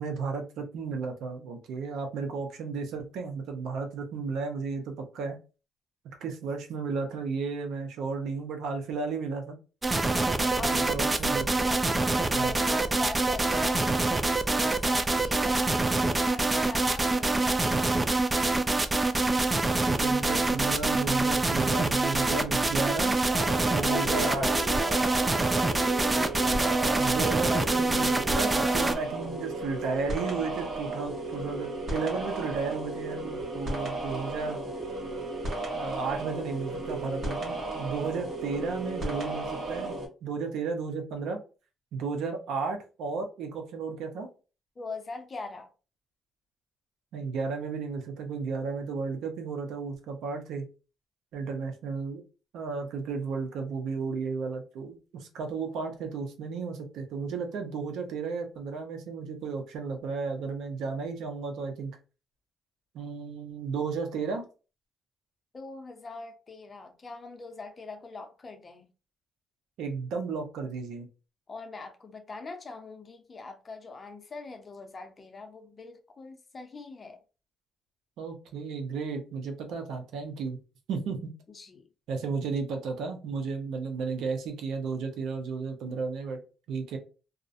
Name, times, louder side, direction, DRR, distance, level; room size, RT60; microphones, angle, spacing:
voice 1, 0.0-5.4 6.2-9.6 10.4-11.6 12.4-12.5 19.9-23.2 23.7-24.5 26.4-34.6 35.7-41.4 41.9-44.3 47.1-50.7 51.3-52.2 52.5-61.9 62.9-64.4 69.8-71.1 78.2-80.6 80.9-81.3 82.1-86.4 86.7-87.0, right 4 dB, 85° right, 0.6 m, -33 dB
sound 1, 9.8-29.0, right 2 dB, 20° right, 0.3 m, -25 dB
voice 2, 10.1-11.1 11.6-13.9 14.5-18.1 23.8-26.0 44.8-45.7 65.5-68.9 71.5-77.2 81.5-81.9, left 3 dB, 35° left, 0.6 m, -42 dB
sound 2, 23.3-40.1, right 2 dB, 60° right, 1.1 m, -34 dB
2.4 x 2.1 x 2.4 m
cardioid pair, 90°, 0 cm